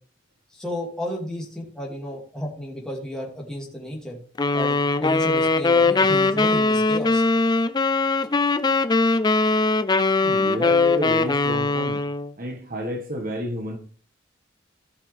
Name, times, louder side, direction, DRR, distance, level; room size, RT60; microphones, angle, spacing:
voice 1, 0.5-4.2 4.5-7.2, equal, 5° left, 2.6 m, -32 dB
sound 1, 4.4-12.3, left 3 dB, 20° left, 0.5 m, -21 dB
voice 2, 10.2-12.0 12.4-13.8, equal, 45° right, 1.6 m, -30 dB
16.0 x 5.6 x 3.5 m
head